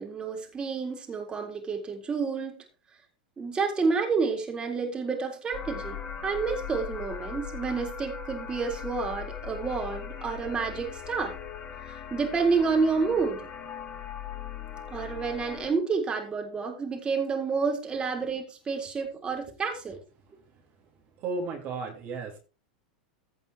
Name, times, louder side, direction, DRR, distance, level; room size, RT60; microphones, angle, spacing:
voice 1, 0.0-2.6 3.4-11.4 11.9-13.5 14.9-20.0, right 5 dB, 20° right, 2 dB, 4.0 m, -29 dB
sound 1, 5.5-15.7, left 7 dB, 30° left, 1.7 m, -39 dB
voice 2, 21.2-22.4, right 3 dB, 45° right, 1 dB, 3.3 m, -34 dB
16.0 x 5.4 x 4.9 m, 0.34 s
hypercardioid pair, 95°, 5 cm